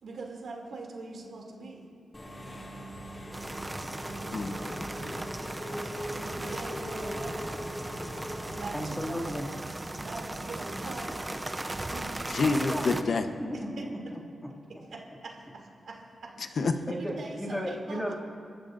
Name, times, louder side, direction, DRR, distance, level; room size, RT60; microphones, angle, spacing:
voice 1, 0.0-1.9 6.1-7.6 8.5-9.3 10.0-12.5 13.5-13.6 14.8-15.0 15.2-16.6 16.9-18.0, right 3 dB, 70° right, -1 dB, 2.8 m, -42 dB
Engine / Mechanisms, 2.1-9.0, equal, 20° left, 2.2 m, -40 dB
sound 1, 3.3-13.0, right 1 dB, 15° right, 0.6 m, -37 dB
voice 2, 4.3-5.2 12.3-13.3 16.6-16.8, left 4 dB, 55° left, 7 dB, 0.9 m, -28 dB
voice 3, 8.7-9.5 12.6-12.9 13.4-14.2 16.9-17.1 17.4-18.1, equal, 5° left, -3 dB, 2.4 m, -34 dB
29.5 x 14.0 x 2.6 m, 2.3 s
wide cardioid pair, 130°, 0 cm